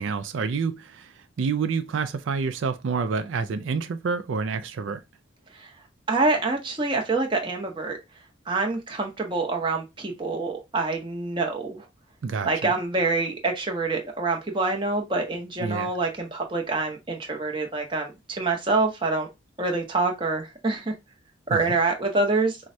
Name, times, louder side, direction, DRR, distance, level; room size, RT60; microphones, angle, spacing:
voice 1, 0.0-5.0 12.2-12.7 15.6-15.9 21.5-21.7, right 5 dB, 85° right, 0.4 m, -28 dB
voice 2, 6.1-8.0 8.5-11.9 12.4-19.3 19.6-20.9 21.5-22.6, right 3 dB, 25° right, 0.7 m, -26 dB
4.5 x 2.1 x 2.6 m
head